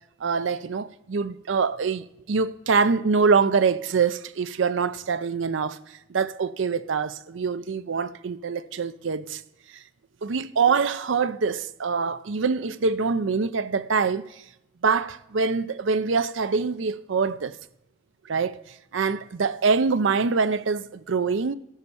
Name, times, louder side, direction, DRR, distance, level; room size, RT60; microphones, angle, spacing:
voice 1, 0.2-5.8 6.1-9.4 10.2-14.3 14.8-17.5 18.3-18.6 18.9-21.6, right 5 dB, 70° right, 0.5 m, -24 dB
13.5 x 5.4 x 6.8 m
head